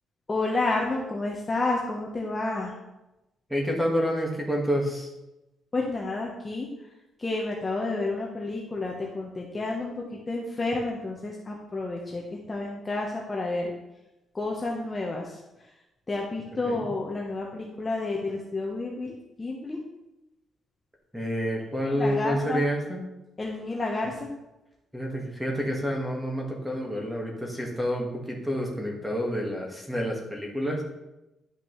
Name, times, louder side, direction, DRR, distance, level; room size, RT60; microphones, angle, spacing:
voice 1, 0.3-2.7 5.7-6.7 7.2-13.7 14.3-15.7 16.1-19.8 21.9-22.6 23.4-24.3, left 2 dB, 20° left, -1 dB, 0.8 m, -30 dB
voice 2, 3.5-5.1 16.7-16.9 21.1-23.0 24.9-30.8, equal, 5° right, 0 dB, 1.4 m, -28 dB
10.5 x 5.9 x 3.0 m, 0.97 s
cardioid pair, 155°, 0 cm